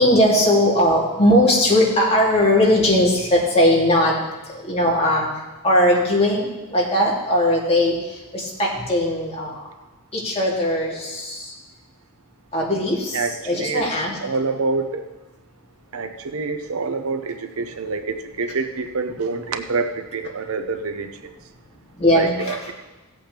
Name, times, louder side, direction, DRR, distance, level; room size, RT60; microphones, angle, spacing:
voice 1, 0.0-4.1 4.7-5.3 5.6-7.9 8.3-9.5 10.1-11.4 12.5-13.2 13.4-14.2 22.0-22.6, left 1 dB, 30° left, -4 dB, 2.8 m, -19 dB
voice 2, 13.1-13.9 14.2-15.1 15.9-21.3 22.1-22.7, right 4 dB, 70° right, 8 dB, 0.8 m, -26 dB
17.0 x 8.3 x 3.4 m, 1.2 s
head